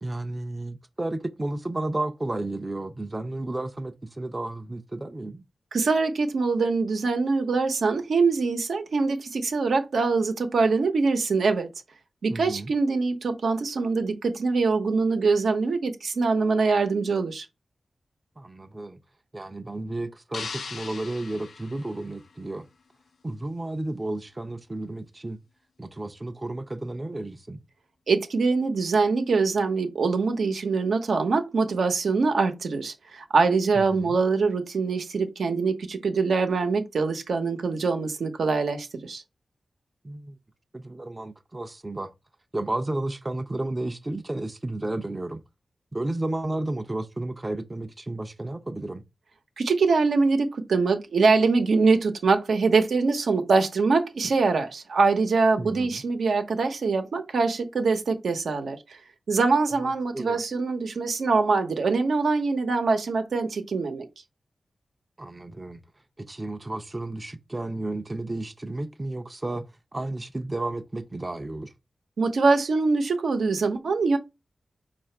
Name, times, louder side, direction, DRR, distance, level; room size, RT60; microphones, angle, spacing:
voice 1, 0.0-5.4 12.3-12.7 18.4-19.0 19.3-22.7 23.2-25.4 25.8-27.6 33.7-34.2 40.0-40.4 40.7-42.1 42.5-45.4 45.9-49.0 55.6-56.0 60.1-60.4 65.2-65.8 66.2-71.7, right 2 dB, 25° right, 0.5 m, -32 dB
voice 2, 5.7-11.7 12.2-17.5 28.1-39.2 49.6-59.0 59.3-64.1 72.2-74.2, right 4 dB, 80° right, 0.8 m, -23 dB
sound 1, 20.3-22.6, left 5 dB, 90° left, 0.5 m, -39 dB
4.8 x 2.4 x 4.4 m
wide cardioid pair, 90°, 0 cm